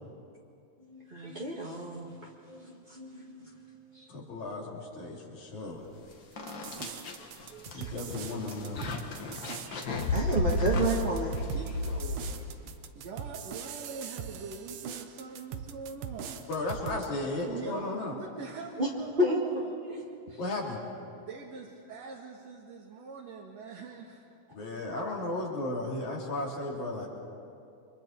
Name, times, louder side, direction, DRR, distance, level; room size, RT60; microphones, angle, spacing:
voice 1, 0.8-2.1 2.4-3.5 3.9-4.1 6.9-7.9 9.7-9.8 10.1-11.4 18.8-18.9 19.2-19.4 19.9-20.4, right 1 dB, 25° right, -4 dB, 1.3 m, -32 dB
voice 2, 4.1-5.8 7.7-8.8 16.5-18.1 20.4-20.8 24.5-27.1, left 2 dB, 75° left, -2 dB, 4.6 m, -35 dB
sound 1, 5.9-6.0 6.4-12.7, left 2 dB, 45° left, 1.9 m, -33 dB
sound 2, 6.5-17.1, right 8 dB, 80° right, 2.4 m, -41 dB
voice 3, 11.5-12.2 13.0-16.5 17.5-19.7 20.3-20.4 21.2-24.2, right 4 dB, 65° right, -1 dB, 2.7 m, -43 dB
29.5 x 25.0 x 4.5 m, 2.5 s
omnidirectional pair, 3.3 m